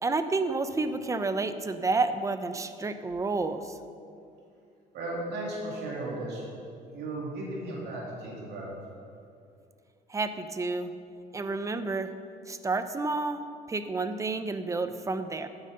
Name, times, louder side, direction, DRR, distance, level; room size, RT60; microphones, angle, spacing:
voice 1, 0.0-3.8 10.1-10.9 11.3-12.1 12.5-13.4 13.7-15.5, right 3 dB, 20° right, 10 dB, 0.7 m, -30 dB
voice 2, 4.9-6.5 6.9-8.7, right 2 dB, 75° right, -3 dB, 2.9 m, -35 dB
11.5 x 8.9 x 5.4 m, 2.4 s
cardioid pair, 110°, 17 cm